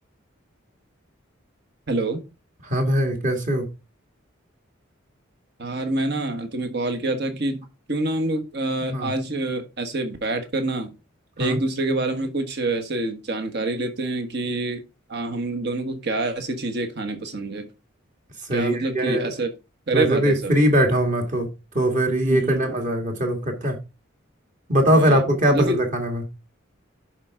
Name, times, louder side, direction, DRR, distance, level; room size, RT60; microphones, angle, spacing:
voice 1, 1.9-2.2 5.6-10.9 11.4-14.8 15.1-17.7 18.5-19.5 19.9-20.5 22.2-22.7 24.8-25.2 25.5-25.8, right 2 dB, 55° right, 1.4 m, -26 dB
voice 2, 2.6-3.7 8.9-9.1 11.4-11.6 18.5-19.3 19.9-21.5 21.7-23.8 24.7-26.3, equal, 40° right, 2.0 m, -21 dB
11.0 x 4.6 x 3.7 m
head